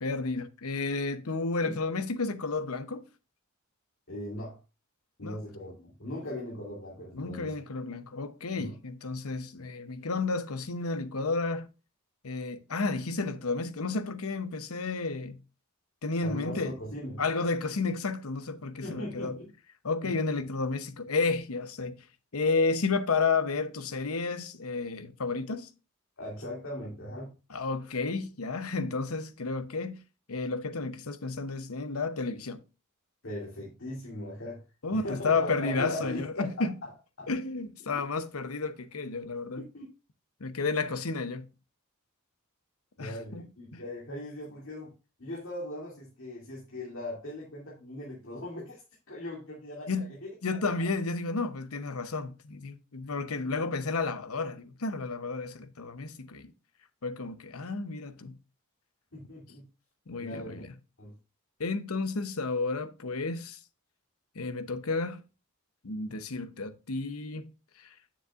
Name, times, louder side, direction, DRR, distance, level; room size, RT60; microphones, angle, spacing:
voice 1, 0.0-3.1 5.2-5.4 7.1-11.7 12.2-15.4 16.0-16.7 17.2-19.4 19.8-21.9 22.3-25.7 27.5-30.0 30.3-32.6 34.8-36.7 37.3-39.6 40.4-41.5 43.0-43.4 43.7-43.8 49.9-50.1 50.4-56.5 57.0-58.3 60.1-60.7 61.6-63.6 64.3-65.2 65.8-67.4 67.8-67.9, left 3 dB, 80° left, 0.9 m, -31 dB
voice 2, 4.1-4.6 5.2-7.5 8.6-8.7 16.2-17.2 18.8-19.5 20.0-20.1 26.2-27.3 33.2-34.6 34.9-36.9 37.2-37.3 37.8-38.0 39.6-39.9 43.0-44.9 45.2-48.8 49.1-50.3 59.1-59.7 60.1-60.6 61.0-61.1, left 1 dB, 65° left, 2.6 m, -39 dB
9.5 x 7.3 x 2.5 m
head